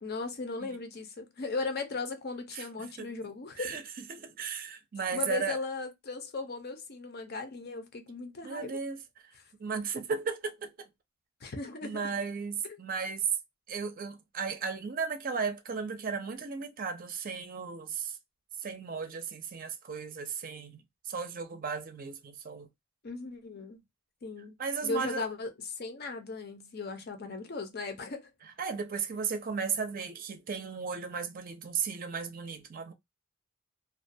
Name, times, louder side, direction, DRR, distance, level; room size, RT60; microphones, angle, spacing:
voice 1, 0.0-3.8 5.1-8.8 11.4-12.0 12.6-12.8 23.0-23.8 24.2-24.6 24.8-28.3, left 3 dB, 50° left, 0.6 m, -37 dB
voice 2, 2.5-3.1 3.6-3.8 4.1-5.6 8.4-9.0 9.6-10.9 11.8-13.3 13.7-18.2 18.6-22.7 24.6-25.2 28.6-32.9, right 5 dB, 45° right, 0.5 m, -35 dB
2.4 x 2.2 x 2.6 m
head